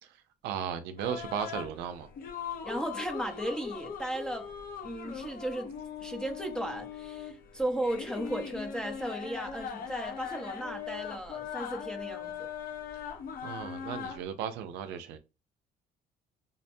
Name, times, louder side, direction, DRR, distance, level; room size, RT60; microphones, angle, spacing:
voice 1, 0.0-2.1 12.9-13.1 13.4-15.2, right 8 dB, 90° right, 0.5 m, -36 dB
sound 1, 1.0-14.2, left 7 dB, 60° left, 0.7 m, -40 dB
voice 2, 2.6-4.5 4.8-5.7 6.0-12.5, right 1 dB, 5° left, 0.6 m, -35 dB
5.3 x 2.1 x 2.6 m
cardioid pair, 110°, 17 cm